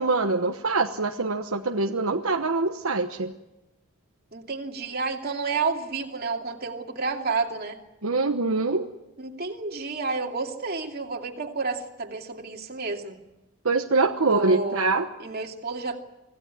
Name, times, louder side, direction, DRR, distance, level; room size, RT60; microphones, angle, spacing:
voice 1, 0.0-3.3 8.0-8.9 13.6-15.0, right 3 dB, 75° right, 3 dB, 1.2 m, -24 dB
voice 2, 4.3-7.8 9.2-13.2 14.2-14.9 15.2-16.0, right 4 dB, 45° right, 2 dB, 2.7 m, -30 dB
25.5 x 16.0 x 9.9 m, 0.97 s
head